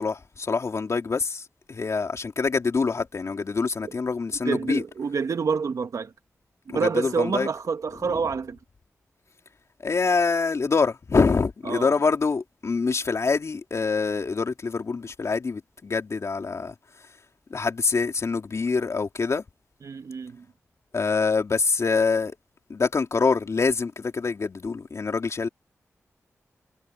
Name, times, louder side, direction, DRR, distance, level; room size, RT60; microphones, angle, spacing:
voice 1, 0.0-4.8 6.7-7.5 9.8-16.7 17.5-19.4 20.9-22.4 22.7-25.5, left 4 dB, 60° left, 3.5 m, -25 dB
voice 2, 4.4-6.1 6.7-8.6 11.6-11.9 19.8-20.4, right 5 dB, 75° right, 1.6 m, -27 dB
cardioid pair, 60°, 6 cm